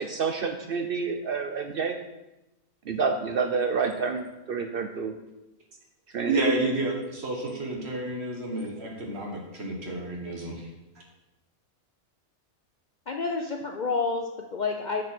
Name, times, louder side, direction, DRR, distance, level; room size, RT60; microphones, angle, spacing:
voice 1, 0.0-2.0 2.9-5.1 6.1-6.4, right 5 dB, 65° right, 6 dB, 0.5 m, -28 dB
voice 2, 6.2-11.0, right 2 dB, 50° right, 0 dB, 1.6 m, -30 dB
voice 3, 13.1-15.1, left 4 dB, 75° left, 2 dB, 0.4 m, -29 dB
6.9 x 6.3 x 4.3 m, 0.97 s
omnidirectional pair, 1.5 m